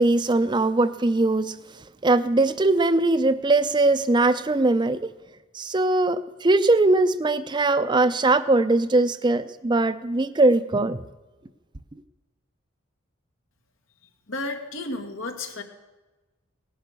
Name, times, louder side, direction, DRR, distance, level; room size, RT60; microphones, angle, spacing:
voice 1, 0.0-1.5 2.0-5.1 5.5-11.0, right 2 dB, 25° right, 12 dB, 0.5 m, -21 dB
voice 2, 14.3-15.6, left 2 dB, 80° left, 4 dB, 1.9 m, -32 dB
17.5 x 10.5 x 6.8 m, 1.2 s
head